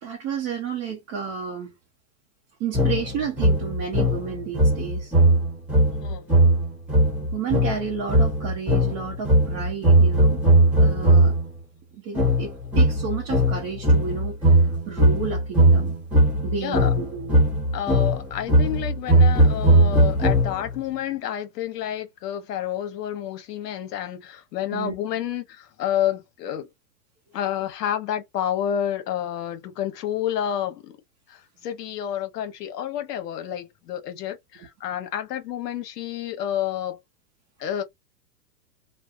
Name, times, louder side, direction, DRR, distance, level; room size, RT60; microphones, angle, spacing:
voice 1, 0.0-1.7 2.6-5.1 7.3-10.4 10.8-11.4 11.9-15.9 16.4-17.4 24.7-24.9, right 6 dB, 30° right, 0.6 m, -31 dB
sound 1, 2.7-11.5 12.2-20.8, right 1 dB, 5° right, 1.1 m, -19 dB
voice 2, 5.7-6.4 16.6-16.9 17.7-26.7 27.3-31.0 31.3-37.0 37.6-37.8, left 10 dB, 75° left, 0.9 m, -29 dB
2.6 x 2.1 x 2.4 m
hypercardioid pair, 135°, 48 cm